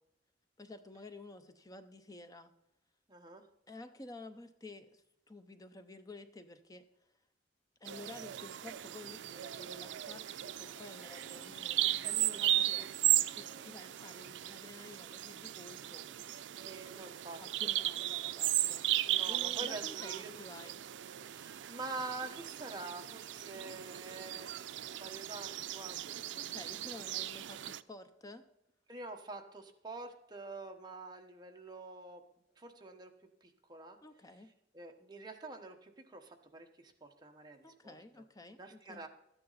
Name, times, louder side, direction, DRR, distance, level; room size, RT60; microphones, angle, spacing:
voice 1, 0.6-2.5 3.7-6.8 7.8-16.1 17.4-18.9 19.3-20.8 26.3-28.5 34.0-34.5 37.6-39.1, left 2 dB, 20° left, 9 dB, 0.7 m, -52 dB
voice 2, 3.1-3.4 12.0-12.9 16.5-17.7 19.1-20.3 21.2-26.2 28.9-32.2 32.6-33.1 33.4-34.0 34.7-38.0 38.6-39.1, right 3 dB, 25° right, 3 dB, 1.1 m, -47 dB
Bird vocalization bird call bird song, 7.9-27.8, right 14 dB, 75° right, 0.4 m, -36 dB
Dog, 10.3-17.0, left 1 dB, 60° left, 0.8 m, -61 dB
12.5 x 9.6 x 4.0 m, 0.81 s
head